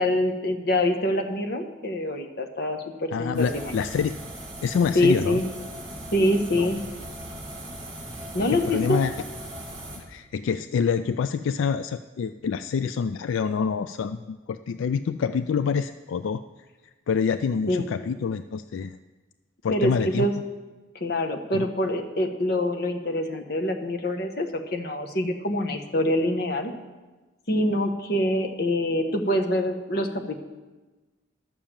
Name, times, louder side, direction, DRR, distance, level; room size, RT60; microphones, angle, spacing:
voice 1, 0.0-3.8 4.9-5.5 6.1-6.8 8.3-9.0 17.7-17.9 19.7-20.3 20.9-26.7 27.5-30.4, left 1 dB, 55° left, 5 dB, 1.0 m, -25 dB
voice 2, 3.1-4.1 4.6-5.4 6.5-6.7 8.2-9.1 10.1-16.4 17.1-19.0 19.6-20.3 21.5-21.7, left 6 dB, 80° left, 12 dB, 0.3 m, -26 dB
sound 1, 3.3-10.0, right 1 dB, 25° right, 2.8 m, -38 dB
11.5 x 7.0 x 7.3 m, 1.2 s
head